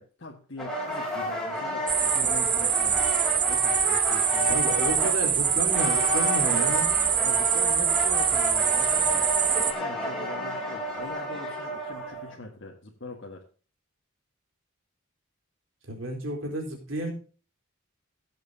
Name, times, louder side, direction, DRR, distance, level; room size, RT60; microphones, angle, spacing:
voice 1, 0.0-3.0 3.4-4.6 5.0-5.1 7.2-9.3 9.7-13.4, left 2 dB, 60° left, -1 dB, 1.7 m, -42 dB
sound 1, 0.6-12.3, left 1 dB, 5° left, 3.8 m, -31 dB
sound 2, 1.9-9.7, right 8 dB, 20° right, 0.7 m, -24 dB
voice 2, 4.5-6.9 15.9-17.1, right 1 dB, 65° right, 1 dB, 4.0 m, -31 dB
16.5 x 7.8 x 2.8 m, 0.38 s
head